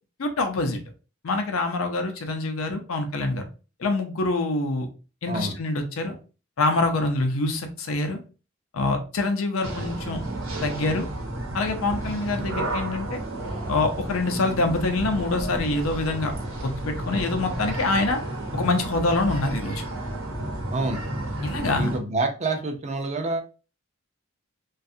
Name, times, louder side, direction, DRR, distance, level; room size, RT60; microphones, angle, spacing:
voice 1, 0.2-0.8 1.2-3.5 3.8-4.9 5.2-6.1 6.6-8.2 8.7-10.2 10.6-11.1 11.5-13.2 13.7-16.3 16.6-18.2 18.5-19.8 21.4-21.9, left 2 dB, 80° left, 5 dB, 0.5 m, -25 dB
sound 1, 9.6-22.0, right 1 dB, 85° right, 0.8 m, -32 dB
voice 2, 21.7-23.4, right 2 dB, 35° right, 5 dB, 0.4 m, -27 dB
2.4 x 2.3 x 2.6 m, 0.35 s
head